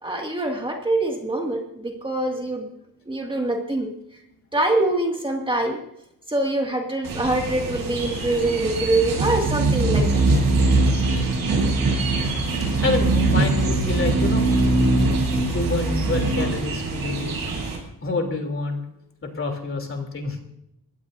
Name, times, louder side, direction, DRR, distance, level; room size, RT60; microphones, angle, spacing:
voice 1, 0.0-2.7 3.1-3.9 4.5-5.8 6.3-10.2, right 2 dB, 15° right, 1 dB, 2.2 m, -24 dB
sound 1, 7.0-17.8, right 2 dB, 70° right, 7.8 m, -22 dB
voice 2, 12.8-14.5 15.5-17.3 18.0-18.8 19.2-20.4, left 3 dB, 35° left, 3 dB, 3.2 m, -27 dB
22.5 x 17.0 x 2.7 m, 0.79 s
wide cardioid pair, 135°, 36 cm